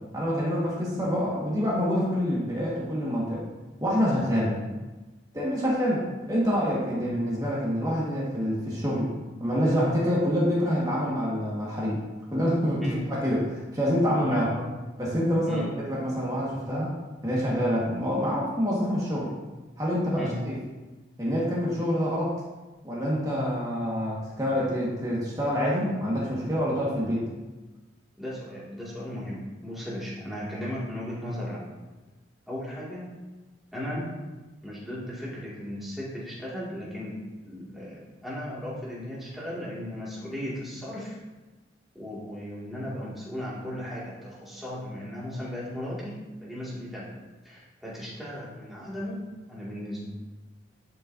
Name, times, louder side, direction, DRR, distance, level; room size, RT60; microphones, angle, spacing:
voice 1, 0.1-3.5 3.8-4.5 5.3-9.1 9.4-12.0 12.3-14.5 15.0-16.9 17.2-19.3 19.8-20.5 21.2-22.3 22.8-27.3, equal, 20° right, -6 dB, 1.6 m, -26 dB
voice 2, 14.1-14.7 15.5-15.7 20.2-20.4 28.2-31.7 32.5-33.1 33.7-34.2 34.6-41.2 41.9-46.1 46.4-47.1 47.4-50.0, left 1 dB, ahead, -8 dB, 2.2 m, -36 dB
11.0 x 5.5 x 2.7 m, 1.2 s
head